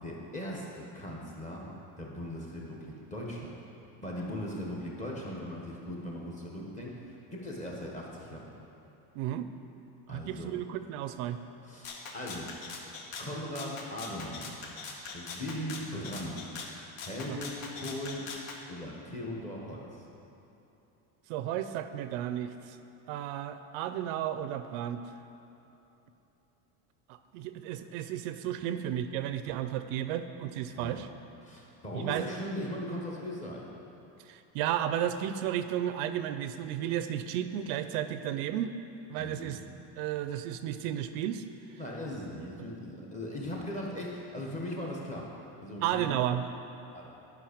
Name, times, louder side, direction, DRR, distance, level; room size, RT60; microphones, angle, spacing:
voice 1, 0.0-1.7 2.0-3.5 4.0-8.5 10.1-10.5 11.6-12.5 13.2-14.6 15.1-16.5 17.0-18.2 18.7-20.0 30.7-30.9 31.4-33.7 39.2-39.6 41.8-45.3 45.6-46.1 46.9-47.2, left 1 dB, 15° left, -3 dB, 1.0 m, -39 dB
voice 2, 9.2-9.5 10.1-11.4 17.3-17.4 21.3-22.8 23.1-25.1 27.1-31.1 31.9-32.3 34.2-38.7 39.1-39.6 40.0-41.4 42.6-42.7 45.8-46.5, right 11 dB, 70° right, 10 dB, 0.5 m, -33 dB
Rattle (instrument), 11.8-18.6, left 4 dB, 65° left, 1.2 m, -42 dB
10.5 x 5.2 x 5.0 m, 3.0 s
cardioid pair, 165°, 47 cm